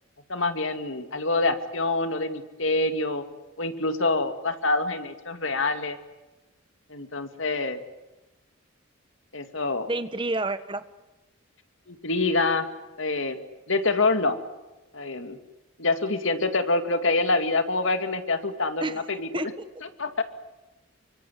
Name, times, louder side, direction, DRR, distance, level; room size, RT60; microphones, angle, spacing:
voice 1, 0.3-3.2 3.6-6.0 6.9-7.8 9.3-9.9 11.9-12.7 13.0-13.4 13.7-14.4 14.9-15.4 15.8-19.5 19.8-20.2, left 3 dB, 60° left, 7 dB, 2.5 m, -26 dB
voice 2, 9.9-10.8 18.8-19.0 19.3-19.5, right 2 dB, 25° right, 11 dB, 1.3 m, -29 dB
26.0 x 24.5 x 8.4 m, 1.1 s
head